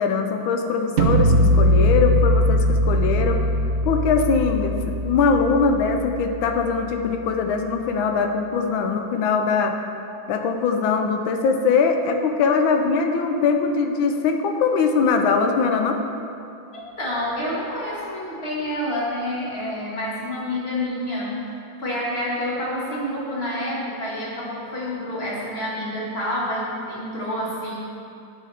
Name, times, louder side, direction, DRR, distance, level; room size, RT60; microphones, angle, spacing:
voice 1, 0.0-3.5 3.8-9.8 10.3-16.0, left 5 dB, 90° left, 5 dB, 1.6 m, -21 dB
sound 1, 1.0-7.0, equal, 70° right, 0.6 m, -21 dB
voice 2, 16.7-21.5 21.8-27.8, left 1 dB, 30° left, -6 dB, 2.2 m, -28 dB
11.5 x 6.3 x 4.4 m, 2.6 s
omnidirectional pair, 2.1 m